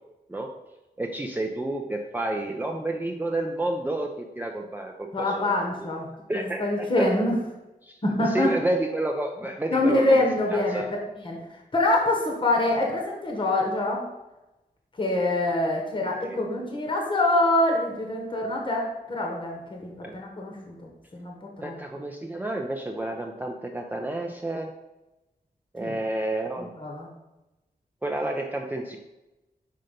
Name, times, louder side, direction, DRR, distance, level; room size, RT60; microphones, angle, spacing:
voice 1, 1.0-5.4 5.8-5.9 6.3-7.1 7.8-10.9 16.2-16.4 20.0-20.1 21.6-24.7 25.7-26.7 28.0-29.0, right 2 dB, 10° right, 1 dB, 0.4 m, -30 dB
voice 2, 5.1-6.1 6.3-7.3 8.0-8.5 9.7-10.8 11.2-11.4 11.7-14.0 15.0-21.8 25.8-25.9 26.6-27.1, left 2 dB, 35° left, 0 dB, 1.0 m, -25 dB
5.5 x 3.9 x 5.2 m, 0.99 s
wide cardioid pair, 140°, 16 cm